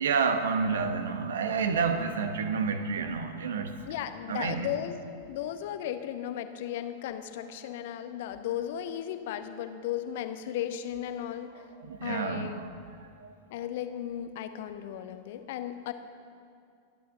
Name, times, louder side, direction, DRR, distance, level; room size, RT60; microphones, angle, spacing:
voice 1, 0.0-3.8 4.3-4.7 11.6-12.7 13.0-13.3, right 5 dB, 65° right, 9 dB, 1.1 m, -29 dB
voice 2, 3.9-5.0 5.3-11.6 12.0-12.7 13.5-15.9, left 10 dB, 55° left, 9 dB, 0.9 m, -35 dB
30.0 x 11.0 x 3.8 m, 2.4 s
figure-of-eight pair, 90°, 0 cm